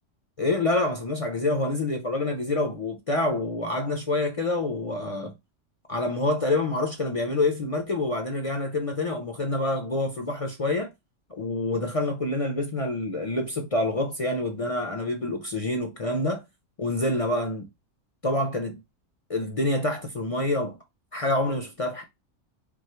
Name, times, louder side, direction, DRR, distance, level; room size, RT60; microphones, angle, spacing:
voice 1, 0.4-5.3 5.9-10.9 11.3-16.4 16.8-17.7 18.2-18.8 19.3-20.8 21.1-22.0, left 2 dB, 50° left, 0.4 m, -27 dB
3.6 x 2.3 x 4.2 m
omnidirectional pair, 1.3 m